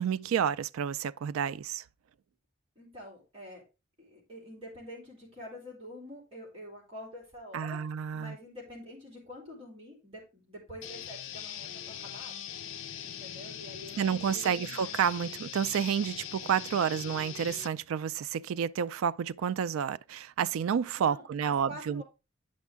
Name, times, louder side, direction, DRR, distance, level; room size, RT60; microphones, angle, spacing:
voice 1, 0.0-1.8 7.5-8.4 14.0-22.0, right 8 dB, 80° right, 0.3 m, -30 dB
voice 2, 2.7-3.6 4.0-7.8 8.1-12.3 13.0-14.9 20.9-22.0, equal, 25° right, 3.2 m, -47 dB
sound 1, 10.8-17.7, left 9 dB, 70° left, 0.5 m, -41 dB
9.2 x 5.3 x 3.5 m
head